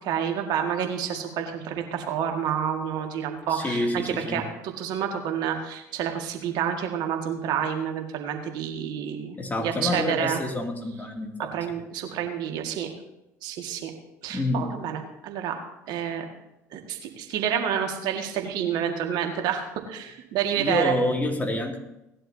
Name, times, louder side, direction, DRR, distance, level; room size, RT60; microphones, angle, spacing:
voice 1, 0.0-10.4 11.5-12.9 13.4-13.9 14.2-15.6 15.9-16.2 16.7-20.9, right 8 dB, 65° right, 3 dB, 1.9 m, -29 dB
voice 2, 3.5-4.5 9.4-11.5 14.3-14.8 20.6-21.8, left 1 dB, 20° left, 2 dB, 2.5 m, -28 dB
18.5 x 11.0 x 2.8 m, 0.91 s
hypercardioid pair, 65°, 8 cm